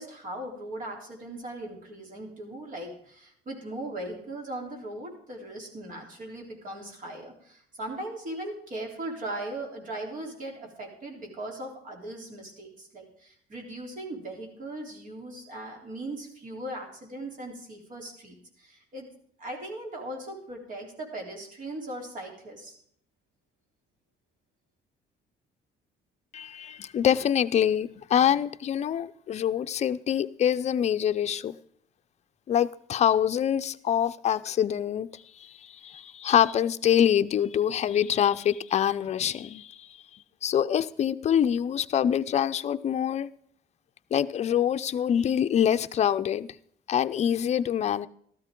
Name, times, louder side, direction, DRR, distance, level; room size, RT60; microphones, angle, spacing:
voice 1, 0.0-19.1 19.4-22.8, right 1 dB, 50° right, 3.7 m, -39 dB
voice 2, 26.3-31.6 32.5-39.9 40.4-43.3 44.1-46.5 46.9-48.1, left 9 dB, 40° left, 0.5 m, -25 dB
13.5 x 13.0 x 3.8 m
cardioid pair, 110°, 17 cm